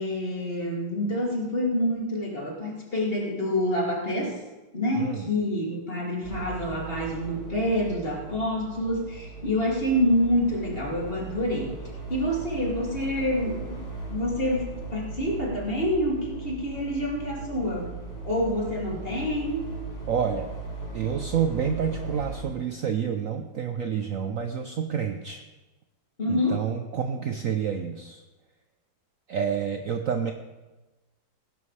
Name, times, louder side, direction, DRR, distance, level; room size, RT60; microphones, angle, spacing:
voice 1, 0.0-4.4 4.7-11.8 12.1-19.7 26.2-26.6, left 1 dB, 30° left, -2 dB, 2.8 m, -27 dB
voice 2, 5.0-5.3 20.1-20.5 20.9-25.4 26.3-28.2 29.3-30.3, right 7 dB, 60° right, 6 dB, 0.9 m, -28 dB
sound 1, 6.2-22.4, right 3 dB, 90° left, 4.9 m, -38 dB
19.0 x 11.0 x 3.3 m, 1.2 s
omnidirectional pair, 1.9 m